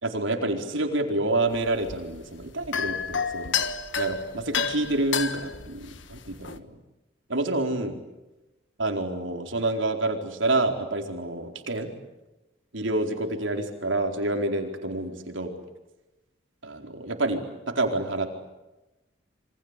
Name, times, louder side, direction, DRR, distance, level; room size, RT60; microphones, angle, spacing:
voice 1, 0.0-3.6 4.0-6.7 7.3-8.0 8.8-11.9 12.7-15.5 16.6-18.3, right 2 dB, 85° right, 4 dB, 4.5 m, -28 dB
sound 1, 1.5-6.6, left 6 dB, 80° left, 1.6 m, -31 dB
28.0 x 24.5 x 8.3 m, 1.0 s
head